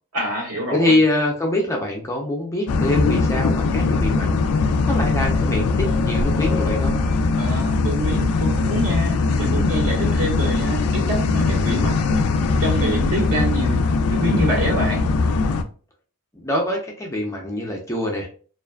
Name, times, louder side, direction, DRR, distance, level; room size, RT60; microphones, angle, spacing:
voice 1, 0.1-1.0 7.4-12.2 12.6-13.8 14.1-15.1, right 1 dB, 80° right, -2 dB, 1.3 m, -26 dB
voice 2, 0.7-4.4 4.9-7.0 16.3-18.3, left 1 dB, 15° left, 0 dB, 0.5 m, -24 dB
sound 1, 2.7-15.6, left 3 dB, 75° left, 0.3 m, -20 dB
2.5 x 2.3 x 2.2 m, 0.40 s
head